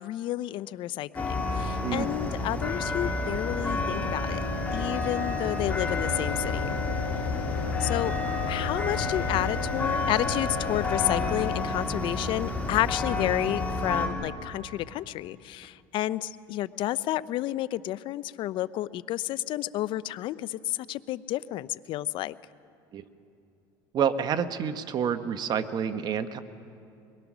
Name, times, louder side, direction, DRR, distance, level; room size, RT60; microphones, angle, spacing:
voice 1, 0.0-4.4 4.7-6.8 7.8-8.2 8.5-22.4, left 14 dB, 55° left, 17 dB, 0.6 m, -31 dB
sound 1, 1.1-14.1, left 3 dB, 15° left, 3.2 m, -30 dB
Mechanical fan, 5.7-11.6, left 9 dB, 85° left, 2.1 m, -37 dB
voice 2, 23.9-26.4, right 7 dB, 45° right, 10 dB, 1.1 m, -28 dB
22.5 x 21.5 x 6.2 m, 2.6 s
supercardioid pair, 105°, 10 cm